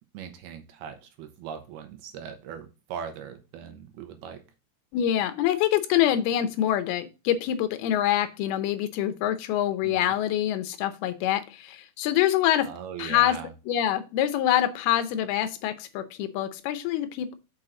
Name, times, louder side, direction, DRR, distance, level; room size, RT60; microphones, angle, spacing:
voice 1, 0.1-4.4 9.8-10.2 12.6-13.5, right 7 dB, 75° right, 6 dB, 2.9 m, -40 dB
voice 2, 4.9-12.7 13.0-13.4 13.7-17.3, left 11 dB, 80° left, 10 dB, 2.6 m, -25 dB
6.2 x 6.1 x 3.8 m, 0.30 s
omnidirectional pair, 4.7 m